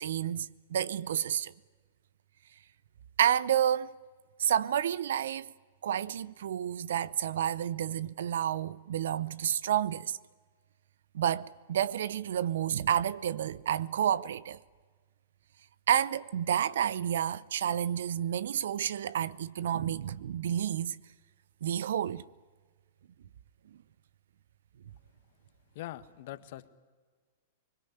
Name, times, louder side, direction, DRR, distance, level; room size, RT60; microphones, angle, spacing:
voice 1, 0.0-1.5 3.2-3.9 4.4-5.5 5.8-10.2 11.1-14.6 15.9-21.0 21.6-22.2, right 10 dB, 70° right, 0.8 m, -30 dB
voice 2, 25.7-26.7, left 15 dB, 60° left, 1.5 m, -42 dB
24.5 x 21.5 x 9.7 m
hypercardioid pair, 115°, 0 cm